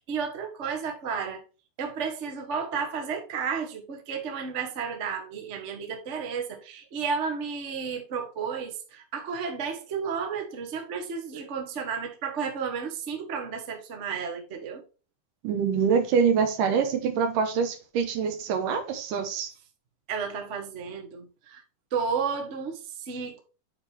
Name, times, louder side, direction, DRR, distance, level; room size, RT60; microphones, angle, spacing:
voice 1, 0.0-1.4 1.8-14.8 20.1-21.6 21.9-23.4, right 6 dB, 65° right, 0.7 m, -32 dB
voice 2, 15.4-19.5, right 6 dB, 80° right, 2.7 m, -25 dB
8.8 x 4.5 x 3.5 m
omnidirectional pair, 3.7 m